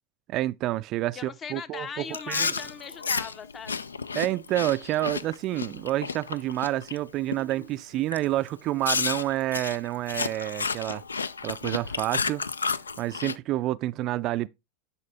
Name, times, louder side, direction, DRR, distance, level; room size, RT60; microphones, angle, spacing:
voice 1, 0.3-2.5 4.1-11.0 11.4-12.4 13.0-14.5, right 15 dB, 45° right, 0.3 m, -29 dB
voice 2, 1.1-3.8, left 6 dB, 30° left, 0.8 m, -39 dB
Chewing mastication, 2.1-7.0 7.3-7.6 8.1-8.2 8.8-13.4, left 5 dB, 90° left, 0.3 m, -31 dB
9.8 x 4.3 x 3.5 m
hypercardioid pair, 90°, 0 cm